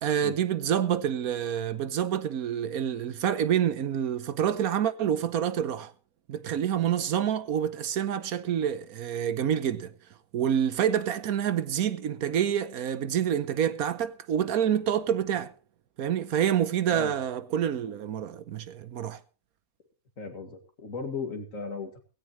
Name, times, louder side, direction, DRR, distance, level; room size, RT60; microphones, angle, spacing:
voice 1, 0.0-5.9 6.3-9.9 10.3-15.5 16.0-19.2, right 9 dB, 85° right, 1.4 m, -27 dB
voice 2, 20.2-22.0, left 4 dB, 65° left, 2.7 m, -36 dB
17.5 x 16.0 x 3.1 m
omnidirectional pair, 1.5 m